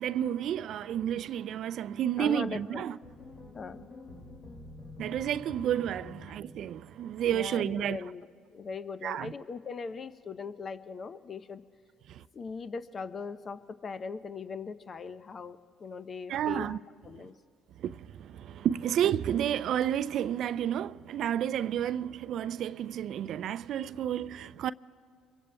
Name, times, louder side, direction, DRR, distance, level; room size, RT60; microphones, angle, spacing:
voice 1, 0.0-3.0 5.0-8.0 9.0-9.3 12.1-12.2 16.3-16.8 17.8-24.7, right 10 dB, 60° right, 0.3 m, -31 dB
voice 2, 2.2-2.8 3.5-3.8 6.0-6.1 7.3-8.3 8.5-11.6 12.3-16.8 17.0-17.3 24.4-24.5, left 5 dB, 45° left, 0.6 m, -40 dB
sound 1, 3.0-7.3, left 2 dB, 60° left, 2.2 m, -48 dB
26.5 x 23.5 x 2.2 m
hypercardioid pair, 60°, 0 cm